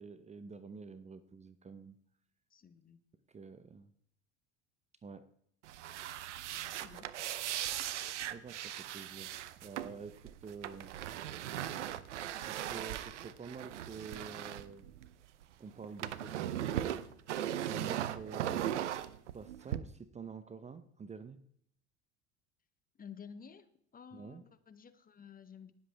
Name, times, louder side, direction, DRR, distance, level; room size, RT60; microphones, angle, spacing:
voice 1, 0.0-2.0 3.3-3.9 5.0-5.3 8.3-9.3 9.6-10.9 12.4-14.9 15.6-16.9 17.6-18.8 19.3-21.4 24.1-24.4, right 5 dB, 20° right, 13 dB, 0.7 m, -48 dB
voice 2, 2.5-3.0 6.8-7.7 18.3-18.7 22.9-23.7 23.9-25.7, left 7 dB, 25° left, 11 dB, 1.1 m, -53 dB
sound 1, 5.6-15.4 15.7-19.8, right 11 dB, 80° right, 0.8 m, -38 dB
19.0 x 7.7 x 3.4 m, 0.68 s
hypercardioid pair, 75°, 35 cm